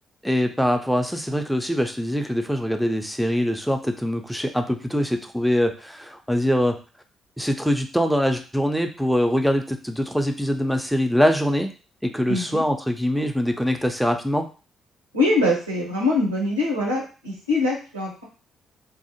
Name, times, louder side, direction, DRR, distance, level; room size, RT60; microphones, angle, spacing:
voice 1, 0.2-6.8 7.4-11.7 12.0-14.5, equal, ahead, 5 dB, 0.4 m, -23 dB
voice 2, 12.3-12.6 15.1-18.2, left 2 dB, 85° right, -3 dB, 0.6 m, -23 dB
2.6 x 2.1 x 2.8 m, 0.35 s
figure-of-eight pair, 40°, 0 cm